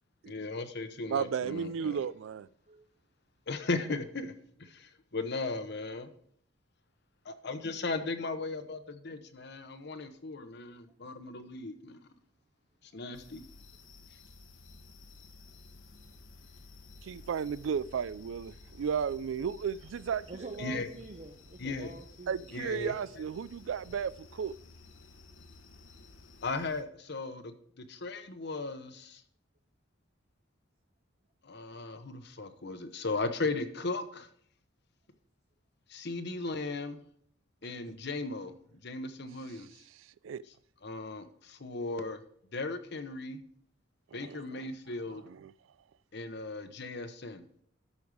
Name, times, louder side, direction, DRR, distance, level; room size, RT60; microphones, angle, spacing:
voice 1, 0.3-2.1 3.5-4.3 4.6-6.1 7.2-12.0 12.9-13.4 20.6-20.9 21.6-21.9 22.5-23.2 26.4-29.2 31.4-34.3 35.9-37.0 37.6-38.5 38.8-39.7 40.8-42.2 42.5-43.4 44.1-45.2 46.1-47.4, left 3 dB, 60° left, 0.9 m, -37 dB
voice 2, 1.1-2.5 17.0-20.5 22.3-24.6 40.2-40.4 44.1-44.6 45.3-45.5, right 7 dB, 75° right, 0.3 m, -34 dB
sound 1, 13.1-26.8, left 2 dB, 80° left, 1.2 m, -54 dB
voice 3, 20.3-22.5, right 3 dB, 35° right, 0.7 m, -46 dB
12.5 x 5.3 x 4.9 m
head